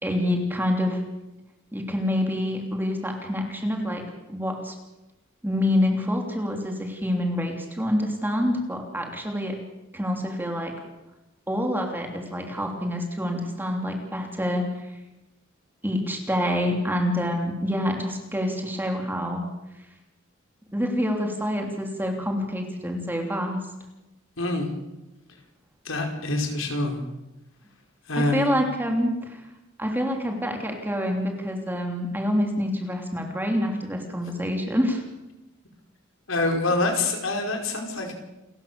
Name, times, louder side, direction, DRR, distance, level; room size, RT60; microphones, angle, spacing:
voice 1, 0.0-1.0 1.7-4.0 4.3-4.7 5.4-9.5 9.9-10.7 11.5-14.9 15.8-19.5 20.7-23.6 28.2-29.4 29.8-35.0, equal, 10° right, 2 dB, 3.2 m, -27 dB
voice 2, 24.4-24.7 25.8-27.0 28.1-28.5 36.3-38.1, left 2 dB, 90° left, 3 dB, 5.0 m, -25 dB
29.0 x 14.5 x 7.0 m, 1.0 s
head